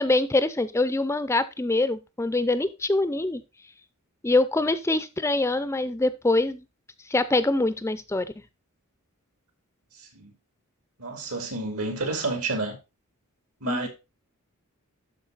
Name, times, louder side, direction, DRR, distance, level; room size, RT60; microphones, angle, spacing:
voice 1, 0.0-3.4 4.2-6.6 7.1-8.3 13.6-13.9, left 2 dB, 10° left, 0.5 m, -24 dB
voice 2, 10.0-10.3 11.0-12.8 13.6-13.9, right 3 dB, 75° right, 2.8 m, -30 dB
12.0 x 4.6 x 3.9 m
head